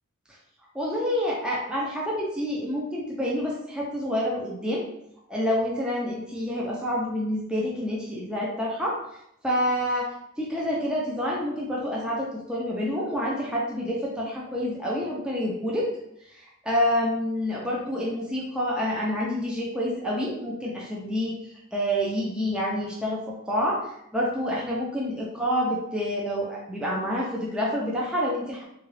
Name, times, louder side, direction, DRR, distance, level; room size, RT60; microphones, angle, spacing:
voice 1, 0.7-4.8 5.3-9.0 9.4-15.9 16.3-21.3 21.7-28.6, equal, 5° right, -5 dB, 0.5 m, -28 dB
3.7 x 2.3 x 3.2 m, 0.77 s
head